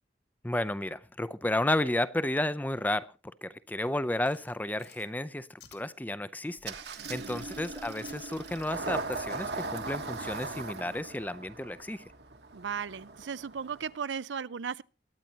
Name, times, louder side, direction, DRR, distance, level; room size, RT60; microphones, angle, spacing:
voice 1, 0.4-12.1, left 1 dB, 10° left, 0.5 m, -32 dB
sound 1, 4.3-5.1 5.6-5.8 7.1-7.2 7.9-8.2 9.0-9.2, left 7 dB, 60° left, 2.4 m, -53 dB
Engine starting, 6.6-14.0, right 3 dB, 65° right, 1.4 m, -39 dB
voice 2, 7.0-7.5 12.5-14.8, right 6 dB, 80° right, 0.5 m, -36 dB
22.5 x 9.3 x 2.9 m
head